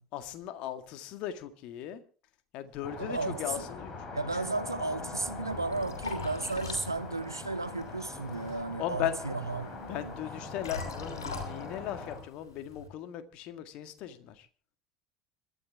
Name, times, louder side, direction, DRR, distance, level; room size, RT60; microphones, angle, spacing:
voice 1, 0.1-2.0 2.5-3.9 4.3-4.4 8.8-9.2 9.9-14.5, left 11 dB, 50° left, 1.8 m, -37 dB
sound 1, 2.8-12.2, left 3 dB, 30° left, 7.0 m, -42 dB
voice 2, 3.0-3.7 4.1-10.1, right 3 dB, 85° right, 0.7 m, -34 dB
Liquid, 5.1-12.9, left 4 dB, 70° left, 5.5 m, -44 dB
26.5 x 12.5 x 3.6 m
figure-of-eight pair, 70°, 2 cm